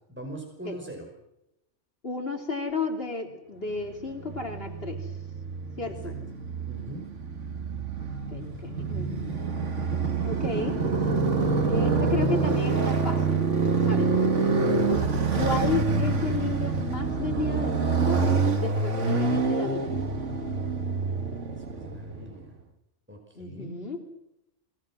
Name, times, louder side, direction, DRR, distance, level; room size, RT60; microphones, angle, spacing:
voice 1, 0.1-1.1 5.8-6.1 6.7-7.1 21.5-22.6 23.1-23.7, right 1 dB, 10° right, 1 dB, 5.5 m, -42 dB
voice 2, 2.0-5.1 5.8-6.2 8.0-9.7 10.2-10.8 11.7-14.1 15.3-18.3 18.6-20.0 23.4-24.0, left 3 dB, 55° left, 3 dB, 3.2 m, -33 dB
Motorcycle, 4.1-22.3, right 4 dB, 85° right, 2.1 m, -26 dB
29.5 x 22.0 x 6.2 m, 0.86 s
omnidirectional pair, 1.2 m